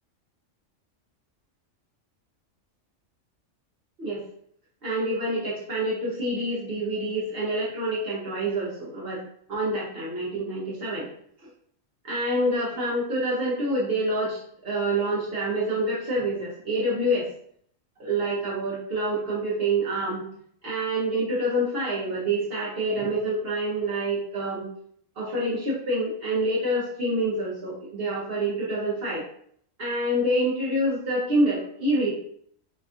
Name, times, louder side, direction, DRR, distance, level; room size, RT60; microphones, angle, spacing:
voice 1, 4.8-9.2 9.5-11.1 12.0-17.3 18.0-20.2 20.6-24.7 25.2-29.2 29.8-32.1, right 1 dB, 55° right, -6 dB, 0.9 m, -27 dB
4.3 x 2.3 x 2.4 m, 0.63 s
omnidirectional pair, 1.3 m